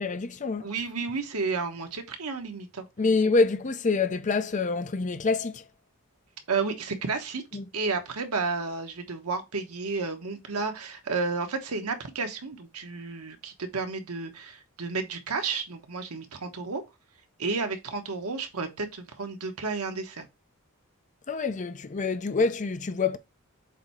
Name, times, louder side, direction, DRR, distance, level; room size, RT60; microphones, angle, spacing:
voice 1, 0.0-0.7 3.0-5.6 7.5-7.6 21.3-23.2, left 4 dB, 35° left, 0.5 m, -26 dB
voice 2, 0.6-2.9 6.5-7.4 7.7-16.8 17.4-20.3, right 4 dB, 80° right, 1.2 m, -32 dB
7.5 x 2.8 x 4.5 m
head